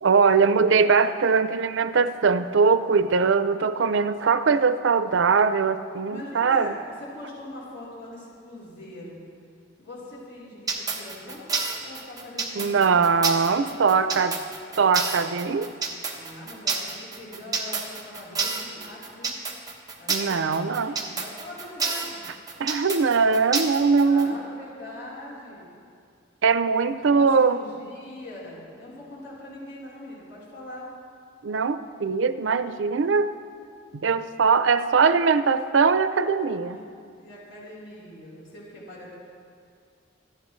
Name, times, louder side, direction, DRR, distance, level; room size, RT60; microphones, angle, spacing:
voice 1, 0.0-6.7 12.6-14.4 14.8-15.7 20.1-20.9 22.6-24.4 26.4-27.6 31.4-33.3 33.9-36.8, right 5 dB, 80° right, 12 dB, 0.5 m, -21 dB
voice 2, 6.1-9.2 9.8-11.5 11.8-13.1 13.5-14.1 16.1-19.4 20.0-22.2 24.0-25.6 27.0-30.9 36.6-36.8 37.2-39.2, left 1 dB, 65° left, -7 dB, 4.0 m, -42 dB
sound 1, 10.7-24.2, right 4 dB, 20° right, 1.2 m, -29 dB
26.5 x 9.5 x 3.2 m, 2.3 s
head